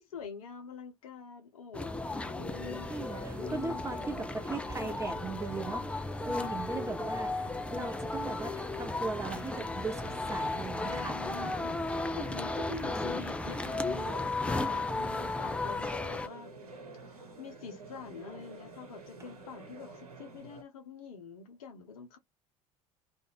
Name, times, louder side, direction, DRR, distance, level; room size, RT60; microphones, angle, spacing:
voice 1, 0.0-2.9 3.4-3.8 4.8-5.0 6.3-6.6 10.8-16.5 17.4-22.2, left 6 dB, 75° left, 0.9 m, -45 dB
sound 1, 1.7-16.3, left 2 dB, 5° left, 0.4 m, -35 dB
sound 2, 2.5-20.6, right 3 dB, 80° right, 1.0 m, -49 dB
voice 2, 2.9-11.2 12.9-13.1, right 3 dB, 15° right, 1.1 m, -38 dB
2.5 x 2.5 x 3.3 m
figure-of-eight pair, 70°, 19 cm